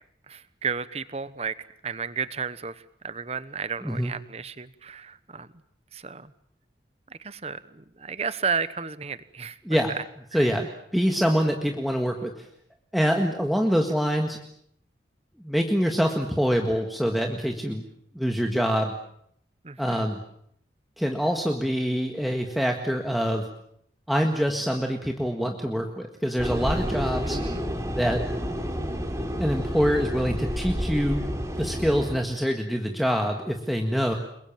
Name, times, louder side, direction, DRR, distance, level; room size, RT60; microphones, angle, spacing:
voice 1, 0.3-1.5 1.8-2.7 3.0-5.5 5.9-6.3 7.2-9.5 10.3-10.5 19.6-20.0 27.2-27.6, right 5 dB, 35° right, 14 dB, 1.1 m, -33 dB
voice 2, 3.8-4.1 9.6-10.0 10.3-12.5 12.9-14.4 15.4-17.8 18.2-18.9 19.8-20.2 21.0-23.5 24.1-27.4 27.9-28.2 29.4-31.2 31.6-34.1, equal, ahead, 2 dB, 1.8 m, -25 dB
sound 1, 26.4-32.2, equal, 15° right, 3.6 m, -30 dB
30.0 x 22.0 x 7.5 m, 0.69 s
head